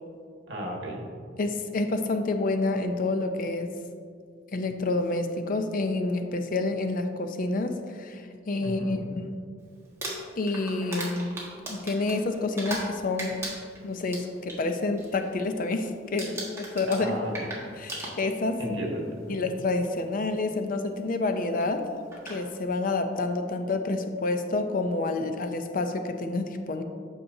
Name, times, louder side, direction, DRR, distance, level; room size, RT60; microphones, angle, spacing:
voice 1, 0.5-1.0 8.6-9.0 16.9-17.5 18.6-19.4, right 1 dB, 75° right, -1 dB, 1.4 m, -34 dB
voice 2, 1.4-3.7 4.5-9.4 10.4-11.3 11.7-13.4 13.8-17.1 17.8-18.6 19.3-21.9 22.3-26.8, left 2 dB, 50° left, 7 dB, 0.5 m, -28 dB
Crumpling crinkling, 9.8-12.9 13.2-14.6 15.0-15.3 15.6-15.9 16.2-18.6 19.5-19.6 21.6-21.7 22.1-22.4, right 1 dB, 15° right, 1.4 m, -37 dB
8.6 x 6.6 x 2.7 m, 2.1 s
head